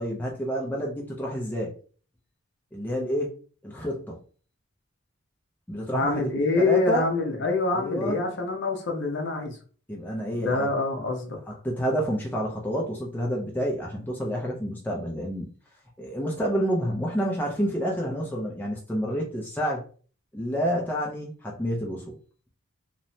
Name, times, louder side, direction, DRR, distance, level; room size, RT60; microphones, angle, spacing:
voice 1, 0.0-1.7 2.7-3.3 3.6-4.2 5.7-7.1 7.7-8.2 9.9-10.7 11.6-15.5 16.0-19.8 20.3-22.2, equal, 10° left, -2 dB, 0.4 m, -29 dB
voice 2, 5.9-9.6 10.4-11.4, left 3 dB, 55° left, 3 dB, 0.6 m, -26 dB
2.9 x 2.1 x 2.6 m, 0.41 s
head